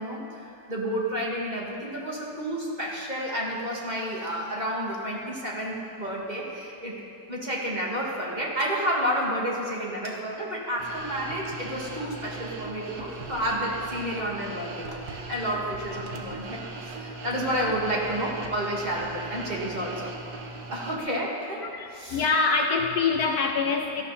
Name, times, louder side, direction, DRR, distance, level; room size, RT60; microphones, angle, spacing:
voice 1, 0.0-7.0 7.3-20.1 20.7-21.6 21.9-22.2, equal, 25° right, -4 dB, 2.2 m, -30 dB
sound 1, 10.8-21.0, right 3 dB, 60° right, 1.6 m, -39 dB
voice 2, 21.6-24.0, left 4 dB, 65° left, 4 dB, 1.1 m, -25 dB
17.0 x 13.0 x 4.3 m, 2.6 s
omnidirectional pair, 1.9 m